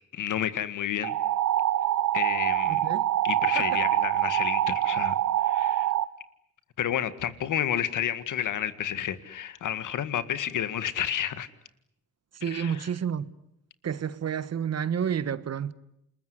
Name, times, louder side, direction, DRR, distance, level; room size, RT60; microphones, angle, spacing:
voice 1, 0.1-1.2 2.1-2.9 3.2-5.2 5.4-5.9 6.8-11.5 12.5-12.9, left 10 dB, 70° left, 1.9 m, -30 dB
sound 1, 1.0-6.1, right 12 dB, 65° right, 1.1 m, -25 dB
voice 2, 2.7-3.1 3.5-3.7 12.3-13.3 13.8-15.7, right 8 dB, 50° right, 1.5 m, -30 dB
28.5 x 21.0 x 9.9 m
supercardioid pair, 70°, 32 cm